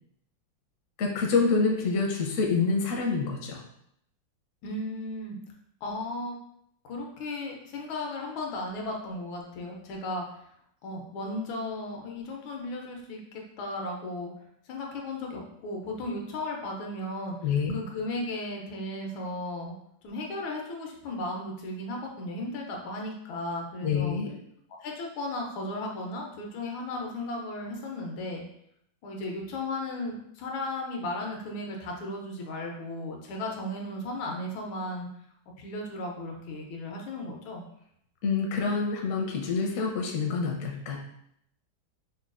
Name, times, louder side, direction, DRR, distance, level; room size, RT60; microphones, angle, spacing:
voice 1, 1.0-3.6 17.4-17.7 23.8-24.3 38.2-41.0, left 4 dB, 65° left, 0 dB, 0.8 m, -27 dB
voice 2, 4.6-5.4 5.8-6.4 6.8-10.2 10.8-14.3 14.7-19.7 20.0-24.2 24.8-28.5 29.0-35.1 35.6-37.6, left 2 dB, 90° left, 0 dB, 1.6 m, -35 dB
5.5 x 2.2 x 2.4 m, 0.72 s
omnidirectional pair, 2.1 m